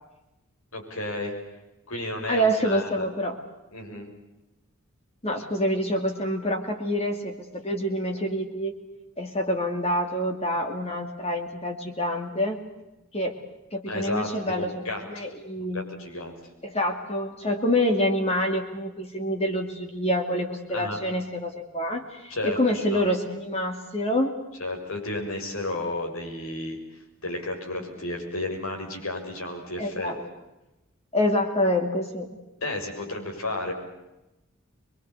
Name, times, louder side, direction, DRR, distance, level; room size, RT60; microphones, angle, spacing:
voice 1, 0.7-1.3 1.9-3.1 3.7-4.1 13.8-15.3 15.6-16.4 20.7-21.0 22.3-23.0 24.6-26.8 27.2-30.1 32.6-33.7, left 2 dB, 80° left, 3 dB, 6.6 m, -32 dB
voice 2, 2.3-3.4 5.2-8.7 9.2-12.6 13.1-13.4 13.7-15.9 16.6-24.3 29.8-30.2 31.1-32.3, equal, 30° left, 4 dB, 2.5 m, -27 dB
25.0 x 23.0 x 8.3 m, 0.98 s
head